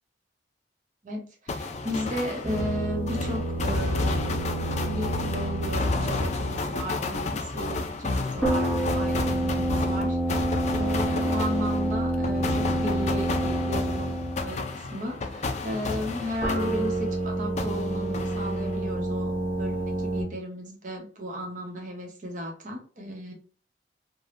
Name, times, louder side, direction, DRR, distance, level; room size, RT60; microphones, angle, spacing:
voice 1, 1.0-4.4 4.8-23.3, equal, 45° right, 2 dB, 0.8 m, -35 dB
sound 1, 1.5-17.2 17.6-18.9, left 3 dB, 40° left, 0.4 m, -32 dB
sound 2, 2.4-6.7 8.4-14.7 16.4-20.2, right 1 dB, 10° left, 1.1 m, -28 dB
3.3 x 2.2 x 2.5 m, 0.39 s
head